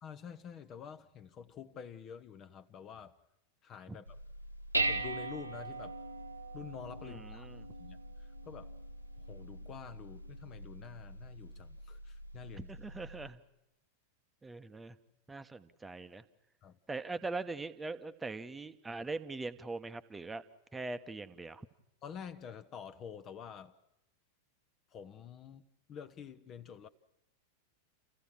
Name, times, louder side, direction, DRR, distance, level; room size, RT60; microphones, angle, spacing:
voice 1, 0.0-3.1 3.6-4.2 4.8-6.0 6.5-7.5 7.8-8.0 8.4-8.7 9.3-12.7 16.6-16.8 22.0-23.7 24.9-26.9, left 7 dB, 30° left, 11 dB, 0.9 m, -48 dB
Dishes pots and pans, 4.1-13.3, right 2 dB, 90° right, 1.0 m, -41 dB
voice 2, 7.0-7.7 12.5-13.4 14.4-15.0 15.3-16.2 16.9-20.4 20.7-21.6, right 3 dB, 10° right, 10 dB, 1.0 m, -41 dB
30.0 x 15.0 x 7.3 m, 0.90 s
figure-of-eight pair, 90°, 0 cm